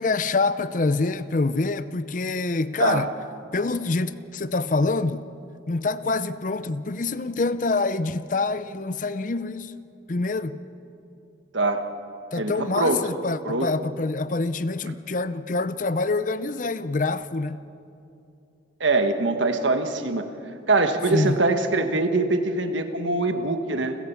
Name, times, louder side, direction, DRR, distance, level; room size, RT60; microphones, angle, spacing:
voice 1, 0.0-3.1 3.5-5.3 5.7-9.8 10.1-10.6 12.3-17.6 21.1-21.4, left 3 dB, 40° left, 0.6 m, -26 dB
voice 2, 12.3-13.0 13.4-13.7 18.8-20.2 20.7-24.0, right 3 dB, 80° right, 1.5 m, -23 dB
30.0 x 15.0 x 7.1 m
head